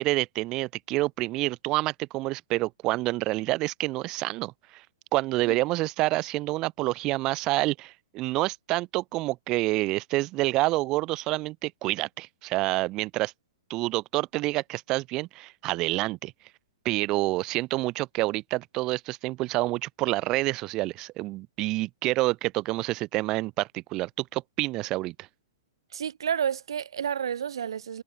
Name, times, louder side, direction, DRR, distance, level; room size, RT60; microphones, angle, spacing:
voice 1, 0.0-4.8 5.1-13.3 13.7-16.3 16.9-25.3, right 19 dB, 20° right, 2.0 m, -28 dB
voice 2, 25.9-28.0, right 8 dB, 75° right, 2.1 m, -30 dB
hypercardioid pair, 180°, 3 cm